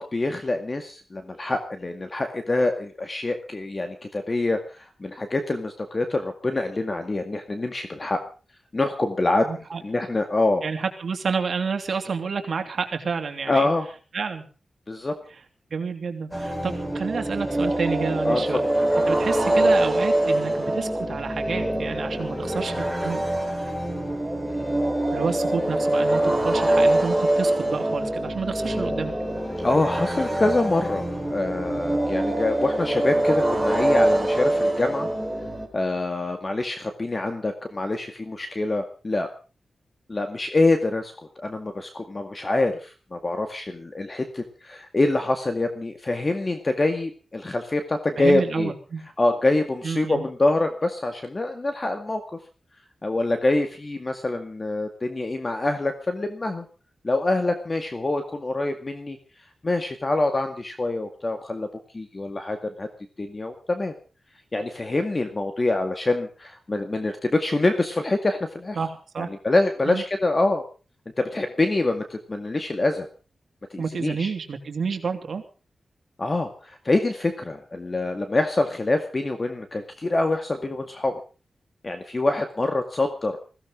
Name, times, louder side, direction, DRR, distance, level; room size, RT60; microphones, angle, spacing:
voice 1, 0.0-8.2 8.7-9.5 9.8-10.6 13.5-13.9 14.9-15.1 18.3-18.6 24.5-24.9 29.6-35.1 35.7-39.3 40.1-48.7 49.2-52.4 53.0-56.7 57.0-59.2 59.6-61.7 61.9-62.9 63.2-63.9 64.5-68.8 69.2-70.6 71.2-73.1 73.7-74.3 76.2-81.2 81.8-83.4, left 2 dB, 30° left, 6 dB, 2.0 m, -25 dB
voice 2, 9.4-9.8 10.6-13.7 14.1-14.4 15.7-18.6 19.1-23.2 25.1-29.1 48.2-49.0 49.8-50.2 68.7-69.3 69.9-70.0 73.8-75.4, right 5 dB, 65° right, 5 dB, 3.0 m, -29 dB
sound 1, 16.3-35.7, right 1 dB, 5° right, 4.7 m, -24 dB
21.5 x 16.0 x 3.9 m, 0.36 s
wide cardioid pair, 130°, 0 cm